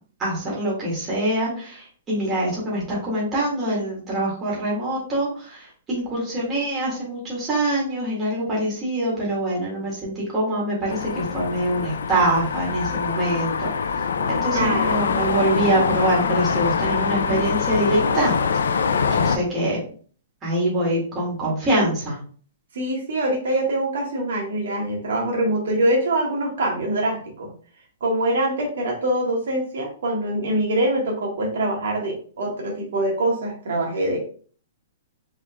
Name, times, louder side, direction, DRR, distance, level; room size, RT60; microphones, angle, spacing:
voice 1, 0.2-13.7 14.3-18.3 19.1-19.8 20.4-22.2, right 1 dB, 15° right, -6 dB, 2.2 m, -24 dB
sound 1, 10.9-19.4, left 6 dB, 90° left, 0.4 m, -24 dB
voice 2, 14.5-15.0 22.7-27.5 28.0-34.2, right 1 dB, 70° right, -1 dB, 1.5 m, -24 dB
5.1 x 3.8 x 2.3 m, 0.43 s
hypercardioid pair, 160°, 0 cm